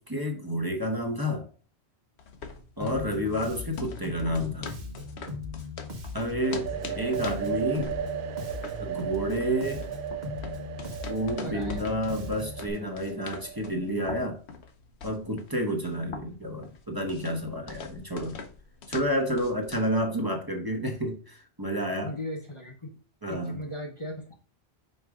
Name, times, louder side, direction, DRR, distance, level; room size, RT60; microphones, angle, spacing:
voice 1, 0.0-1.5 2.8-4.7 6.1-7.9 8.8-9.8 11.1-14.4 15.0-18.3 18.9-22.1 23.2-23.6, equal, 20° right, 1.1 m, -30 dB
sound 1, 2.2-20.0, left 4 dB, 75° left, 1.1 m, -43 dB
Bass guitar, 2.8-12.7, left 3 dB, 45° right, 1.1 m, -39 dB
sound 2, 6.4-14.0, right 11 dB, 60° right, 0.6 m, -36 dB
voice 2, 11.4-11.8 22.0-22.9 23.3-24.3, left 1 dB, 30° left, 0.9 m, -37 dB
5.5 x 4.8 x 3.6 m
omnidirectional pair, 1.1 m